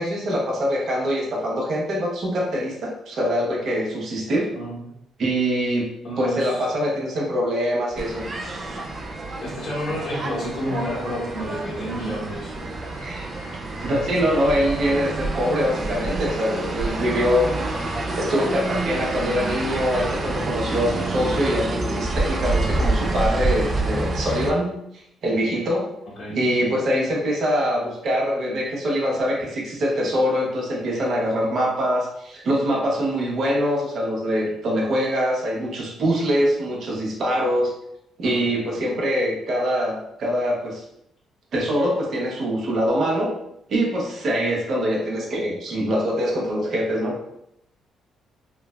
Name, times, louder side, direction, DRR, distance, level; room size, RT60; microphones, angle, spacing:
voice 1, 0.0-4.5 5.2-5.9 6.2-8.2 13.0-13.2 13.8-24.8 25.2-25.9 26.3-37.7 38.2-40.8 41.5-43.3 43.7-47.1, equal, 55° right, -2 dB, 0.8 m, -24 dB
voice 2, 4.5-5.0 6.0-6.7 9.4-12.7 26.2-26.4 38.2-38.5, equal, 65° left, -6 dB, 1.0 m, -30 dB
sound 1, 8.0-24.5, right 2 dB, 40° right, 0.4 m, -27 dB
3.1 x 2.0 x 2.3 m, 0.76 s
cardioid pair, 85°, 0 cm